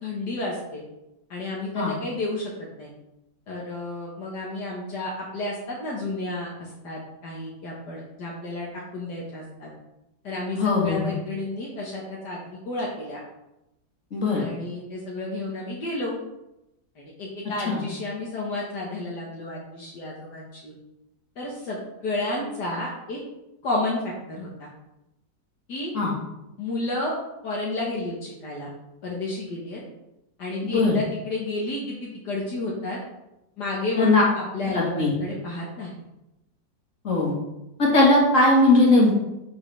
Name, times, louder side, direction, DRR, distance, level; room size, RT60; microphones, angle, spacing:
voice 1, 0.0-0.8 1.3-2.5 2.8-2.9 3.5-8.7 8.9-9.7 10.2-13.2 14.4-16.1 17.0-20.7 21.4-23.2 23.6-24.7 25.7-25.9 26.6-27.1 27.4-28.7 29.0-29.8 30.4-33.0 33.6-35.9, left 2 dB, 70° left, -4 dB, 2.0 m, -31 dB
voice 2, 10.5-11.1 14.1-14.4 17.7-17.8 25.9-26.1 30.6-31.0 34.0-34.2 34.6-35.1 37.0-37.4 37.8-39.1, left 2 dB, 45° left, -3 dB, 2.3 m, -19 dB
8.7 x 6.4 x 3.4 m, 0.91 s
omnidirectional pair, 1.9 m